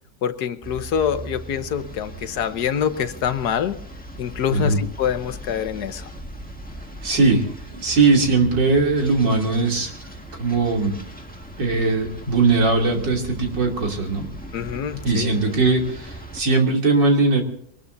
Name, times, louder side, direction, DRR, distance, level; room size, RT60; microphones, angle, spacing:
voice 1, 0.2-3.8 4.2-6.1 14.5-15.3, left 8 dB, 65° left, 10 dB, 1.5 m, -25 dB
athens traffic, 0.6-16.4, right 1 dB, 5° left, 1.6 m, -38 dB
voice 2, 7.0-7.5 7.7-9.9 10.4-11.0 11.6-14.2 15.0-17.4, right 3 dB, 85° right, 1 dB, 3.6 m, -19 dB
23.0 x 20.0 x 2.7 m, 0.70 s
omnidirectional pair, 1.9 m